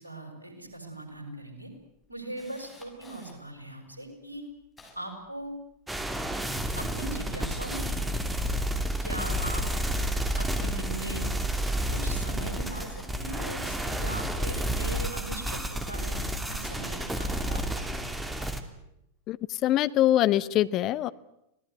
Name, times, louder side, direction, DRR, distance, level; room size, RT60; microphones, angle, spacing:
voice 1, 0.0-1.7 2.1-4.4 4.9-5.5 6.8-8.1 9.0-9.6 10.4-11.3 11.9-18.0, right 2 dB, 80° right, 5 dB, 6.4 m, -40 dB
Camera, 1.7-3.3 4.0-4.1 4.3-6.0 6.3-7.5 7.9-9.1 9.4-9.6 10.1-14.1 15.2-15.3 16.2-18.0 18.6-18.7, left 2 dB, 15° left, 7.3 m, -52 dB
sound 1, 5.9-18.6, equal, 10° right, 2.8 m, -30 dB
voice 2, 19.3-21.1, left 13 dB, 35° left, 15 dB, 0.9 m, -24 dB
26.0 x 18.5 x 9.5 m, 0.82 s
figure-of-eight pair, 90°, 0 cm